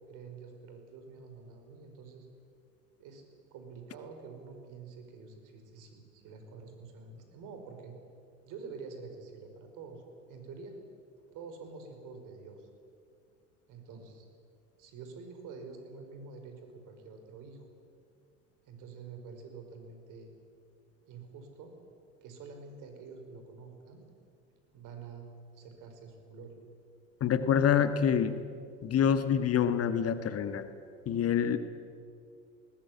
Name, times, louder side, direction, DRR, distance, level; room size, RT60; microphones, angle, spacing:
voice 1, 0.1-2.3 3.0-3.2 3.5-8.0 8.4-10.7 11.3-12.7 13.7-14.3 14.8-17.7 18.7-20.3 21.1-21.7 22.2-24.0 24.7-25.3 25.5-26.6, right 4 dB, 50° right, 5 dB, 5.2 m, -47 dB
voice 2, 27.2-28.4 28.8-30.7 31.0-31.6, left 8 dB, 35° left, 11 dB, 1.5 m, -26 dB
20.0 x 19.5 x 9.6 m, 2.3 s
hypercardioid pair, 80°, 39 cm